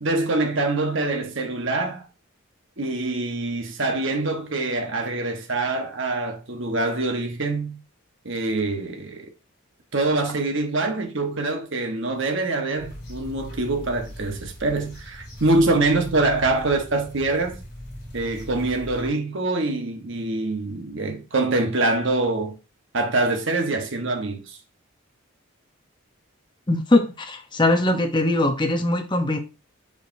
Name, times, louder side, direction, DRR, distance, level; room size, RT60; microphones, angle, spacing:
voice 1, 0.0-2.1 2.8-7.8 8.2-9.3 9.9-17.6 18.1-22.6 22.9-24.6, right 2 dB, 60° right, 1.2 m, -24 dB
sound 1, 12.8-19.1, equal, 50° left, 3.7 m, -39 dB
voice 2, 26.7-29.4, left 1 dB, 20° left, 0.8 m, -21 dB
7.2 x 5.0 x 2.7 m
head